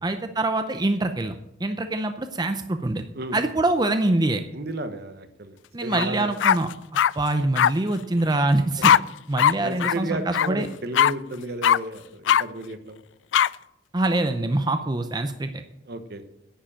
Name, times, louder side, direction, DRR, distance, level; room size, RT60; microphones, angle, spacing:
voice 1, 0.0-3.1 3.3-4.4 5.7-6.7 7.2-8.9 9.3-10.7 13.9-15.6, right 2 dB, 20° right, 8 dB, 0.6 m, -24 dB
voice 2, 4.5-6.3 9.6-13.0 15.9-16.2, right 1 dB, 60° right, 9 dB, 1.1 m, -33 dB
sound 1, 5.9-6.1 6.4-7.1 7.6-7.7 8.8-9.0 9.4-9.5 9.8-9.9 10.3-10.5 10.9-11.1 11.6-11.8 12.3-12.4 13.3-13.5, left 9 dB, 80° left, 0.3 m, -18 dB
10.5 x 7.5 x 8.7 m, 0.85 s
head